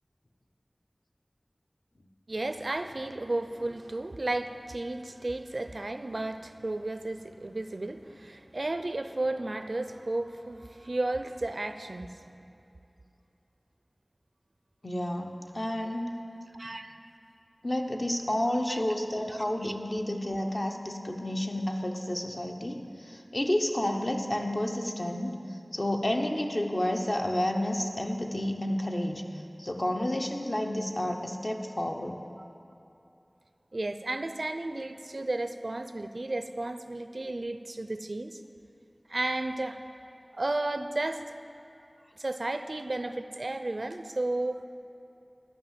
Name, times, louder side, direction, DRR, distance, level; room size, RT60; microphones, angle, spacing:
voice 1, 2.3-12.2 16.5-16.9 18.7-18.8 19.3-19.7 33.7-38.4 39.1-39.8 40.3-41.3 42.2-44.6, right 2 dB, 70° right, 9 dB, 0.4 m, -33 dB
voice 2, 14.8-16.2 17.6-29.2 29.6-32.2, left 1 dB, 50° left, 2 dB, 0.9 m, -30 dB
12.5 x 5.6 x 7.5 m, 2.7 s
wide cardioid pair, 45°, 0 cm